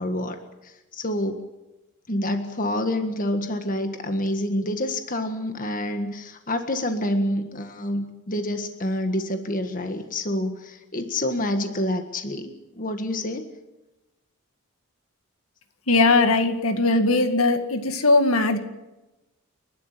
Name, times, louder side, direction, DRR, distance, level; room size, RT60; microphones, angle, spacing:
voice 1, 0.0-1.4 2.1-13.4, left 1 dB, 40° left, 7 dB, 1.7 m, -27 dB
voice 2, 15.9-18.6, left 3 dB, 70° left, 7 dB, 2.1 m, -19 dB
30.0 x 12.0 x 8.4 m, 1.0 s
head